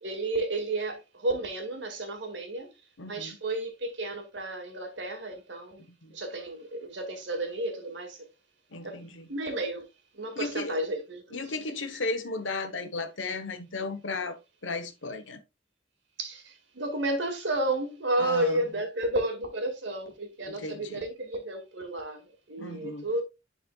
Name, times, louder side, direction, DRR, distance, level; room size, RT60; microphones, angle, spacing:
voice 1, 0.0-2.7 3.1-5.8 6.1-8.3 8.8-9.0 9.3-9.9 10.1-11.4 16.2-23.2, right 1 dB, 65° right, 2.0 m, -32 dB
voice 2, 3.0-3.4 6.0-6.1 8.7-9.3 10.3-10.8 11.3-14.4 14.6-15.4 18.2-18.6 20.6-21.0 22.6-23.0, left 3 dB, 75° left, 1.0 m, -35 dB
10.5 x 4.3 x 2.3 m
head